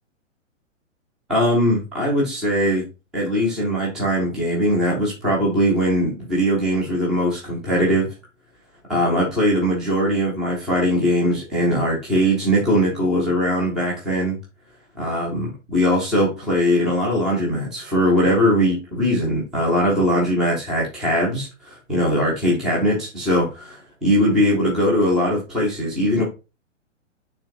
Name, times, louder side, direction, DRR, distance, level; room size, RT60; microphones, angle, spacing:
voice 1, 1.3-2.8 3.1-8.1 8.9-14.4 15.0-23.5 24.0-26.2, equal, ahead, -4 dB, 0.4 m, -20 dB
6.5 x 3.0 x 2.5 m, 0.28 s
figure-of-eight pair, 115°, 38 cm